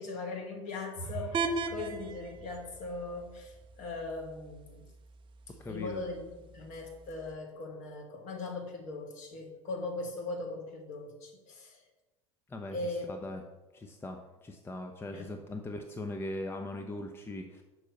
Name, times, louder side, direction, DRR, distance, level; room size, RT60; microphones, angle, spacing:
voice 1, 0.0-4.8 5.6-11.8 12.7-13.1 15.1-15.3, left 3 dB, 50° left, 1 dB, 1.6 m, -39 dB
sound 1, 0.9-4.8, right 4 dB, 75° left, 1.3 m, -47 dB
sound 2, 1.3-7.3, right 4 dB, 30° right, 0.6 m, -40 dB
voice 2, 5.6-6.0 12.5-13.4 13.7-17.6, left 1 dB, 15° left, 5 dB, 0.6 m, -40 dB
6.3 x 4.5 x 5.2 m, 1.1 s
figure-of-eight pair, 75°, 16 cm